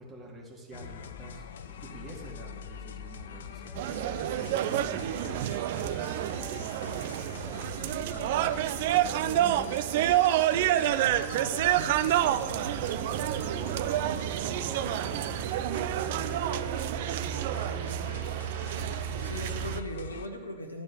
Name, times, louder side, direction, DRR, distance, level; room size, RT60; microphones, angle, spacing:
voice 1, 0.0-13.8 14.1-15.4 15.7-18.3, right 2 dB, 20° right, -2 dB, 2.2 m, -46 dB
sound 1, 0.7-20.3, left 7 dB, 60° left, 0.4 m, -43 dB
sound 2, 3.8-19.8, right 13 dB, 50° right, 0.3 m, -29 dB
voice 2, 16.4-16.8 19.2-20.8, left 1 dB, 80° left, 5 dB, 0.8 m, -39 dB
12.0 x 4.3 x 6.1 m, 1.5 s
figure-of-eight pair, 90°, 0 cm